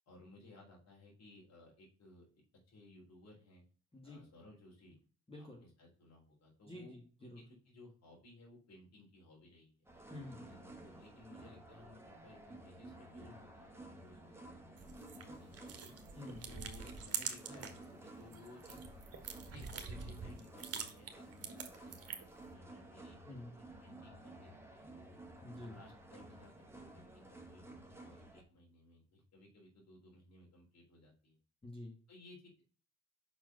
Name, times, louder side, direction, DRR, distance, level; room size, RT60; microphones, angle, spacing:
voice 1, 0.1-2.3 2.7-3.6 4.0-5.0 5.4-9.8 10.4-15.9 16.5-23.2 23.4-23.5 23.8-24.9 25.6-31.4 32.1-32.6, left 2 dB, 60° left, -2 dB, 3.6 m, -59 dB
voice 2, 3.9-4.2 5.3-5.6 6.7-7.4 10.1-10.5 16.1-16.5 23.3-23.5 25.4-25.8 31.6-32.0, left 1 dB, 20° left, 0 dB, 1.9 m, -49 dB
sound 1, 9.8-28.4, right 2 dB, 10° right, 1.6 m, -54 dB
sound 2, 14.8-17.9 18.2-22.4, right 6 dB, 50° right, 1.5 m, -45 dB
5.8 x 4.7 x 5.3 m, 0.40 s
cardioid pair, 90°, 30 cm